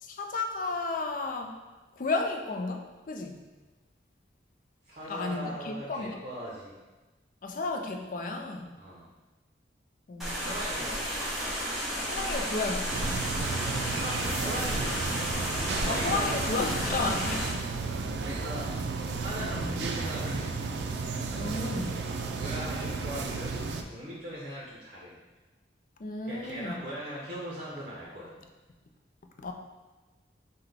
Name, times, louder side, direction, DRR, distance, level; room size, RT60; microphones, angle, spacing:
voice 1, 0.0-1.6 2.0-3.4 5.1-6.2 7.4-8.8 10.1-10.5 12.1-13.0 15.9-17.5 19.4-19.8 21.3-22.0 26.0-26.8 29.4-29.5, left 3 dB, 50° left, 4 dB, 0.4 m, -33 dB
voice 2, 4.8-6.7 8.8-9.1 10.5-11.1 13.6-15.1 15.8-16.8 18.2-18.8 19.1-20.5 22.3-23.6 23.8-25.2 26.3-28.4, equal, 50° right, -5 dB, 0.7 m, -39 dB
sound 1, 10.2-17.5, equal, ahead, 0.9 m, -32 dB
sound 2, 12.9-23.8, right 4 dB, 70° right, 0.4 m, -33 dB
5.8 x 2.2 x 3.4 m, 1.2 s
head